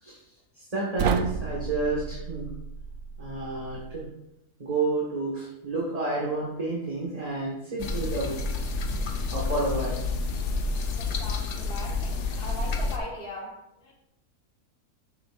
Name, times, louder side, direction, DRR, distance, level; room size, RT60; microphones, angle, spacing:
voice 1, 0.5-2.5 3.2-4.0 4.6-8.4 8.9-9.0 9.3-10.0, right 2 dB, 25° right, -5 dB, 1.7 m, -30 dB
sound 1, 1.0-4.1, right 6 dB, 65° right, 0.8 m, -32 dB
sound 2, 7.8-13.0, left 3 dB, 90° left, 1.5 m, -29 dB
voice 2, 11.0-13.9, left 1 dB, 40° left, -1 dB, 1.9 m, -40 dB
12.5 x 7.0 x 2.6 m, 0.86 s
omnidirectional pair, 1.6 m